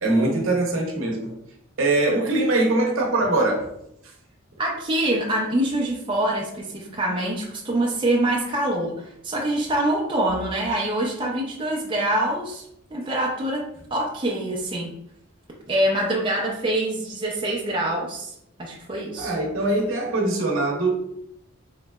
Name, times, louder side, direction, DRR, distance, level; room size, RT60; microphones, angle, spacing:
voice 1, 0.0-1.3 1.8-3.7 19.2-20.9, right 2 dB, 70° right, 0.8 m, -22 dB
voice 2, 4.6-12.6 12.9-13.6 13.9-14.9 15.7-18.3 18.6-19.3, right 1 dB, 25° right, 0.5 m, -25 dB
3.8 x 3.1 x 2.2 m
head